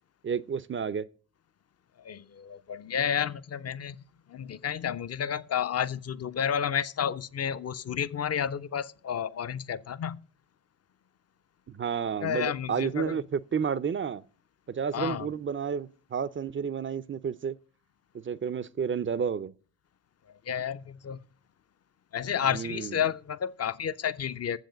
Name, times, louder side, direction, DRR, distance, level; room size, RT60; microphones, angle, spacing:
voice 1, 0.2-1.1 11.7-14.2 14.7-17.6 18.2-19.5 22.5-23.0, right 7 dB, 25° right, 0.5 m, -31 dB
voice 2, 2.0-4.0 4.3-10.2 12.2-13.2 14.9-15.3 20.5-21.2 22.1-24.6, left 8 dB, 35° left, 0.6 m, -31 dB
9.1 x 7.6 x 5.1 m
hypercardioid pair, 45°, 47 cm